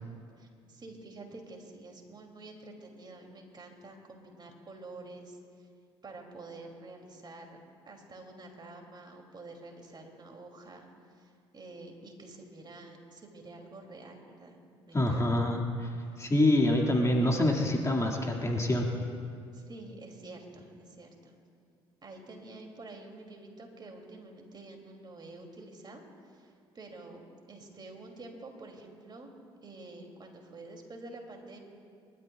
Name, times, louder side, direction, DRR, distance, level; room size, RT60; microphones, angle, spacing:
voice 1, 0.4-5.7 6.0-7.6 7.8-10.9 11.1-14.6 14.9-15.2 19.5-21.3 22.0-27.2 27.5-29.3 29.6-31.6, right 2 dB, 35° right, 2 dB, 2.8 m, -48 dB
voice 2, 14.9-15.9 16.2-18.9, left 1 dB, 20° left, 0 dB, 2.1 m, -26 dB
29.0 x 12.5 x 2.4 m, 2.3 s
hypercardioid pair, 55°, 13 cm